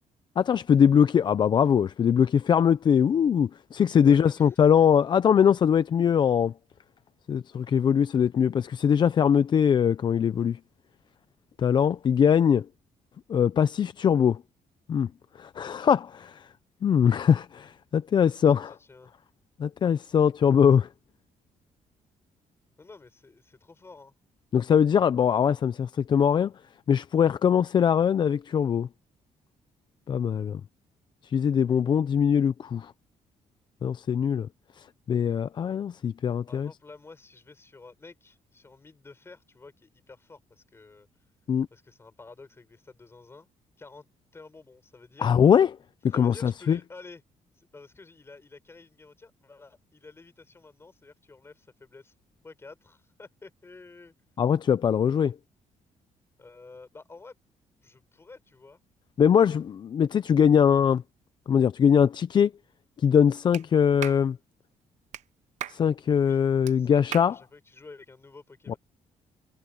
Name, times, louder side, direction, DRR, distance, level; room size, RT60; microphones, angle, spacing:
voice 1, 0.4-6.5 7.3-10.6 11.6-12.7 13.3-14.4 14.9-15.1 15.4-16.4 16.8-18.7 19.6-20.9 24.5-26.5 26.9-28.9 30.1-30.6 31.2-32.9 33.8-34.5 34.8-36.7 41.5-41.7 45.2-45.7 46.1-46.8 54.4-55.3 59.2-61.0 61.5-62.5 63.0-64.4 65.7-67.3 68.7-68.8, left 8 dB, 35° left, 0.5 m, -22 dB
voice 2, 4.0-4.6 18.5-19.1 22.8-24.1 36.5-41.1 41.7-43.5 43.8-44.1 44.3-45.3 46.1-47.2 47.5-52.1 52.4-54.1 56.4-57.4 57.8-58.8 66.2-66.4 66.7-68.8, left 3 dB, 20° left, 6.7 m, -50 dB
Clapping, 63.5-63.7 64.0-64.2 65.1-65.2 65.6-65.8 66.7-66.8 67.1-67.3, right 12 dB, 70° right, 0.7 m, -36 dB
cardioid pair, 150°, 13 cm